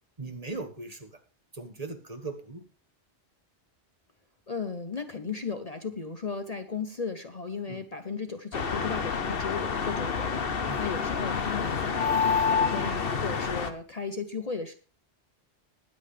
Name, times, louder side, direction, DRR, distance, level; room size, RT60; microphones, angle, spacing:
voice 1, 0.2-1.1 1.5-2.6 7.7-7.8 10.7-10.8, right 3 dB, 35° right, 6 dB, 1.5 m, -38 dB
voice 2, 4.5-14.7, left 5 dB, 40° left, 8 dB, 0.9 m, -36 dB
sound 1, 8.5-13.7, left 6 dB, 55° left, 1.2 m, -28 dB
21.0 x 8.0 x 3.3 m, 0.35 s
omnidirectional pair, 1.2 m